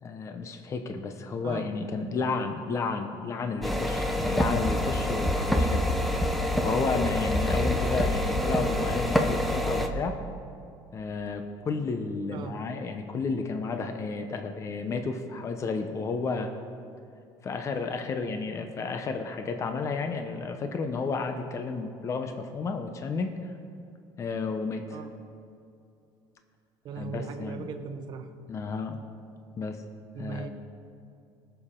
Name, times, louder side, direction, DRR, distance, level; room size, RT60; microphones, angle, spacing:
voice 1, 0.0-5.9 6.6-10.2 10.9-16.5 17.4-23.5 24.2-25.0 27.0-27.7 28.5-29.0 29.6-29.8 30.2-30.5, left 4 dB, 30° left, 6 dB, 0.8 m, -32 dB
sound 1, 3.6-9.9, left 1 dB, ahead, 0.8 m, -26 dB
voice 2, 8.3-8.7 12.3-12.7 24.9-25.1 26.8-28.3 30.1-30.5, right 6 dB, 50° right, 7 dB, 1.0 m, -39 dB
20.0 x 7.0 x 3.8 m, 2.5 s
cardioid pair, 125°, 9 cm